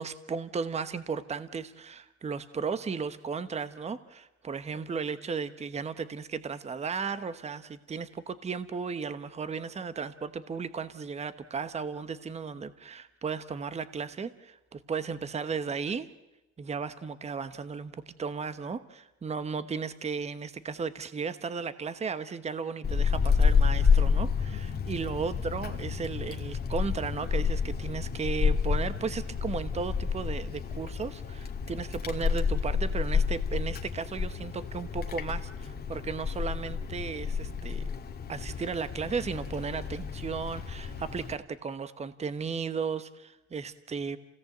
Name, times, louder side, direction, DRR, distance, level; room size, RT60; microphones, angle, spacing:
voice 1, 0.0-16.1 16.6-37.8 38.3-44.2, right 5 dB, 20° right, 13 dB, 1.1 m, -35 dB
Wind, 22.8-41.3, left 6 dB, 35° left, 1.8 m, -29 dB
28.0 x 17.5 x 7.9 m, 1.0 s
cardioid pair, 120°, 29 cm